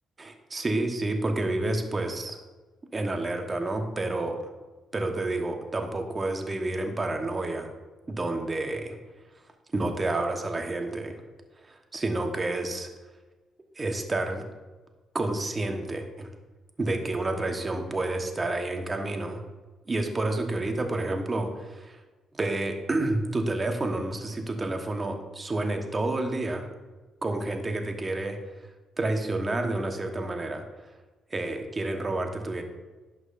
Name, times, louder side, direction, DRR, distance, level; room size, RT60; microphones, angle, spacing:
voice 1, 0.2-2.4 2.9-4.4 4.9-7.7 8.1-9.0 9.7-11.2 11.6-12.9 13.8-14.4 15.1-16.3 16.8-19.4 19.9-22.0 22.3-26.7 27.2-28.7 29.0-30.6 31.3-32.6, right 2 dB, 30° right, 4 dB, 1.2 m, -29 dB
11.0 x 6.2 x 2.6 m, 1.2 s
supercardioid pair, 70°, 0 cm